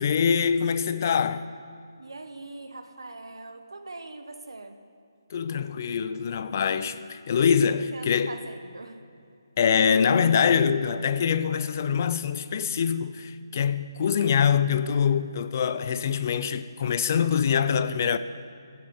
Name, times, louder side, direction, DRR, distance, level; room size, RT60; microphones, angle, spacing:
voice 1, 0.0-1.5 5.3-8.3 9.6-18.2, left 7 dB, 40° left, 0.5 m, -24 dB
voice 2, 2.0-4.8 7.9-9.0 14.2-14.5, right 2 dB, 70° right, 1.2 m, -42 dB
14.5 x 7.5 x 6.8 m
figure-of-eight pair, 150°, 2 cm